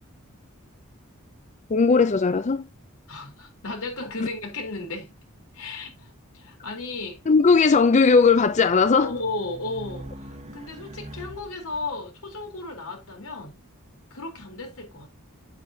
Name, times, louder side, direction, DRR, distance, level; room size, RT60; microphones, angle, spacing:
voice 1, 1.7-2.7 4.2-4.3 7.3-9.1, left 4 dB, 35° left, 0.5 m, -18 dB
voice 2, 3.1-5.1 5.5-6.1 6.3-7.2 8.9-13.6 14.1-15.1, left 3 dB, 90° left, 3.8 m, -34 dB
Race car auto racing, 7.7-11.9, right 1 dB, 30° right, 1.3 m, -44 dB
9.0 x 8.4 x 2.8 m
head